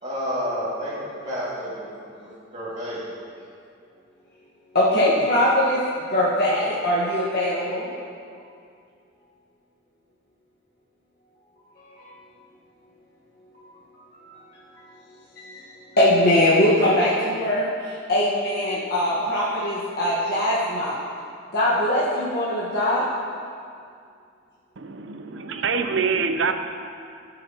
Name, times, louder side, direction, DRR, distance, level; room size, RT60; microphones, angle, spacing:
voice 1, 0.0-3.0, equal, 35° right, -8 dB, 2.2 m, -30 dB
voice 2, 4.7-5.8 6.1-7.9 12.0-12.1 13.5-13.6 14.1-14.3 15.4-15.6 16.0-20.9 21.5-23.0, left 1 dB, 55° left, -9 dB, 1.4 m, -21 dB
voice 3, 24.8-26.5, right 5 dB, 65° right, 7 dB, 0.6 m, -25 dB
15.0 x 6.8 x 2.9 m, 2.3 s
head